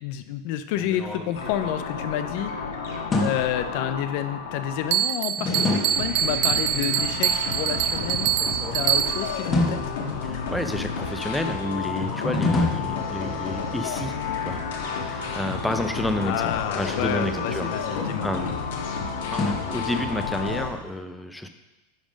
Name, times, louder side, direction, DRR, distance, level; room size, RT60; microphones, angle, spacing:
voice 1, 0.0-2.5 3.1-8.3 8.7-9.8 16.2-18.3, left 11 dB, 60° left, 10 dB, 0.5 m, -29 dB
sound 1, 0.7-2.5 3.1-3.7 5.4-6.2 8.3-9.0 9.5-10.6 12.2-13.7 16.0-18.5 19.4-20.3, left 2 dB, 25° left, 1.3 m, -29 dB
sound 2, 1.3-5.1 5.5-20.7, left 5 dB, 80° left, 1.5 m, -31 dB
Bell, 4.9-9.4, right 11 dB, 50° right, 0.5 m, -25 dB
voice 2, 10.2-14.2 14.4-14.6 14.9-18.7 19.3-21.5, left 1 dB, 5° left, 7 dB, 0.6 m, -30 dB
10.5 x 3.6 x 5.1 m, 1.0 s
supercardioid pair, 135°, 0 cm